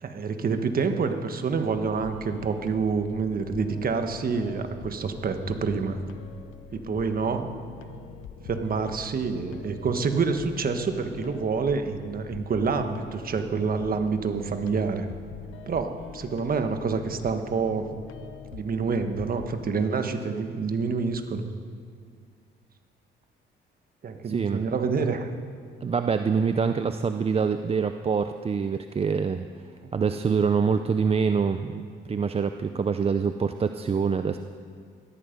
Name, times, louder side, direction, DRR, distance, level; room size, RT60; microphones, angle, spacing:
voice 1, 0.0-6.0 6.7-7.5 8.4-15.1 15.7-17.9 18.5-21.4 24.0-25.3 29.8-30.2, right 5 dB, 45° right, 7 dB, 1.4 m, -27 dB
sound 1, 1.7-19.5, left 8 dB, 85° left, 0.9 m, -44 dB
voice 2, 24.3-24.7 25.8-29.5 29.9-31.8 32.1-34.4, right 6 dB, 30° right, 8 dB, 0.5 m, -25 dB
17.5 x 13.5 x 5.3 m, 2.1 s
cardioid pair, 90°, 20 cm